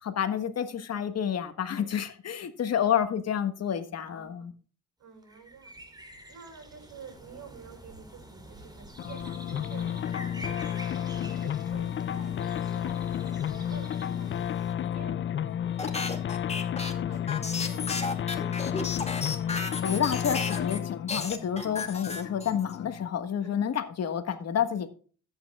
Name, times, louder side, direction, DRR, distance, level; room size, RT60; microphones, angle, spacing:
voice 1, 0.0-4.5 19.7-24.9, left 8 dB, 55° left, 9 dB, 1.5 m, -29 dB
voice 2, 4.1-4.5 5.0-5.7 6.3-19.0 21.6-22.0 23.4-23.6, right 5 dB, 75° right, 2 dB, 5.9 m, -50 dB
sound 1, 5.2-14.7, right 1 dB, 15° right, 2.9 m, -47 dB
sound 2, 9.0-23.1, left 9 dB, 40° left, 0.4 m, -32 dB
sound 3, 15.8-20.8 21.1-22.7, left 4 dB, 20° left, 2.2 m, -34 dB
14.5 x 8.7 x 2.3 m, 0.41 s
cardioid pair, 90°, 30 cm